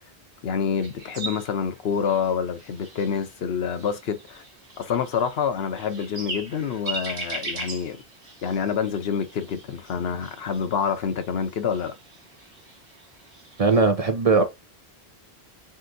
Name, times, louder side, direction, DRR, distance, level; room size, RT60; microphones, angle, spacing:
voice 1, 0.4-4.4 4.8-8.0 8.4-11.9, left 7 dB, 75° left, 0.9 m, -27 dB
sound 1, 0.8-13.8, right 2 dB, 60° right, 1.6 m, -40 dB
voice 2, 13.6-14.4, right 4 dB, 40° right, 0.7 m, -19 dB
7.4 x 2.6 x 2.6 m
omnidirectional pair, 1.1 m